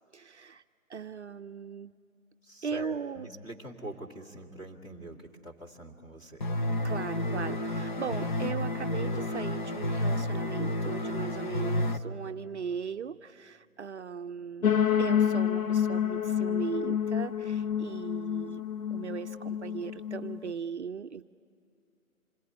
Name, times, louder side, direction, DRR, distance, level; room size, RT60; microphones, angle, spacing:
voice 1, 0.1-0.6 0.9-1.9 2.6-3.3 6.8-18.6 18.9-21.3, right 6 dB, 55° right, 9 dB, 0.6 m, -38 dB
voice 2, 2.4-6.4, right 1 dB, 10° left, -1 dB, 1.9 m, -44 dB
sound 1, 6.4-12.0, left 1 dB, 35° left, 0.8 m, -31 dB
sound 2, 14.6-20.5, left 9 dB, 70° left, 1.1 m, -28 dB
27.0 x 22.0 x 9.8 m, 2.6 s
figure-of-eight pair, 145°, 43 cm